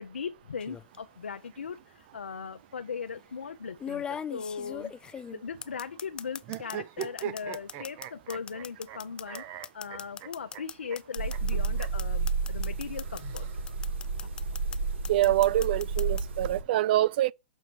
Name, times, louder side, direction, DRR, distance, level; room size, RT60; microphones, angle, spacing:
voice 1, 0.0-4.9 5.3-9.4 9.7-13.4 14.0-14.3, left 6 dB, 90° left, 0.7 m, -39 dB
sound 1, 0.6-1.0 2.2-2.3 3.8-6.8 7.0-13.4 13.7-14.8 15.0-16.2, left 7 dB, 15° left, 0.4 m, -39 dB
sound 2, 6.4-9.0 9.3-10.6 10.9-11.0 11.3-11.4 11.7-11.9 12.9-13.9, right 10 dB, 35° right, 0.9 m, -40 dB
sound 3, 11.2-16.6, right 4 dB, 80° right, 4.6 m, -31 dB
voice 2, 15.1-17.3, right 14 dB, 55° right, 0.4 m, -25 dB
6.4 x 4.3 x 5.1 m
hypercardioid pair, 125°, 6 cm